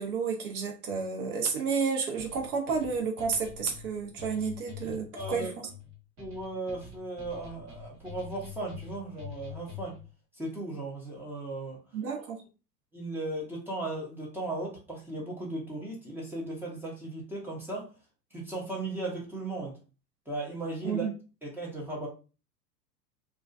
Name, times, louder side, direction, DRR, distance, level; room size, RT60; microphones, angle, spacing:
voice 1, 0.0-5.7 11.9-12.4 20.8-21.1, right 5 dB, 60° right, 2 dB, 0.8 m, -31 dB
sound 1, 2.2-10.1, left 7 dB, 35° right, 1.1 m, -45 dB
voice 2, 4.9-5.5 6.2-10.0 10.4-11.8 12.9-17.9 18.3-19.8 20.3-21.1 21.4-22.1, right 2 dB, 5° right, -4 dB, 0.4 m, -36 dB
2.3 x 2.3 x 2.3 m, 0.33 s
hypercardioid pair, 100°, 49 cm